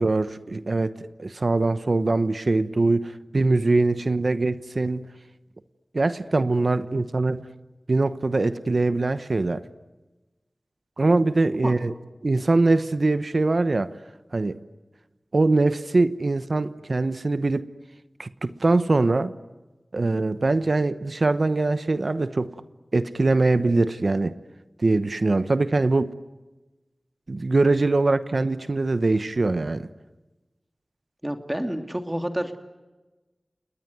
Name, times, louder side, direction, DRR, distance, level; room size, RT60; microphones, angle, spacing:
voice 1, 0.0-5.1 5.9-7.4 7.9-9.6 11.0-11.9 12.2-13.9 14.3-14.6 15.3-17.7 18.2-19.3 19.9-22.5 22.9-24.3 24.8-26.1 27.3-29.9, right 2 dB, 65° right, 1.0 m, -22 dB
voice 2, 31.2-32.6, equal, 15° right, 2.7 m, -29 dB
30.0 x 20.0 x 9.4 m
wide cardioid pair, 45°, 0 cm